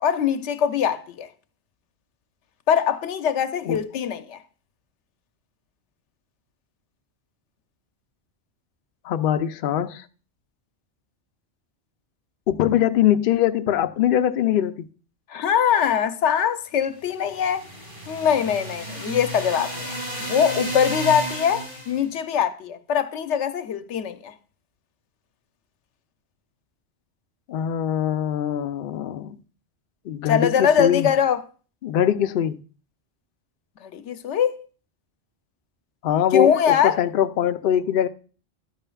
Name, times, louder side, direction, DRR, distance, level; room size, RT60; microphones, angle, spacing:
voice 1, 0.0-1.3 2.7-4.4 15.3-17.7 18.1-19.9 20.2-24.3 30.3-31.4 33.8-34.7 36.3-37.0, left 8 dB, 90° left, 0.9 m, -22 dB
voice 2, 9.0-10.0 12.5-14.9 27.5-29.4 30.1-31.1 31.8-32.6 36.0-38.1, left 10 dB, 60° left, 0.6 m, -22 dB
sound 1, 17.1-22.0, equal, 45° right, 5.1 m, -33 dB
12.5 x 8.8 x 2.3 m
omnidirectional pair, 1.2 m